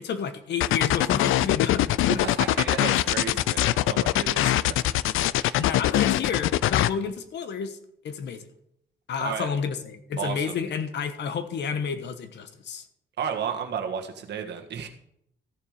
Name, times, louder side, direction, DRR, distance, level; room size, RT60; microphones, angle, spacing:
voice 1, 0.0-2.2 5.6-7.8 8.0-8.5 9.1-12.8, left 6 dB, 60° left, 10 dB, 1.2 m, -30 dB
sound 1, 0.6-6.9, left 14 dB, 85° left, 0.4 m, -22 dB
voice 2, 2.1-4.8 5.4-5.7 9.2-9.5 10.2-10.6 13.2-14.9, right 7 dB, 55° right, 4 dB, 1.6 m, -33 dB
14.5 x 7.0 x 5.0 m, 0.73 s
cardioid pair, 175°, 20 cm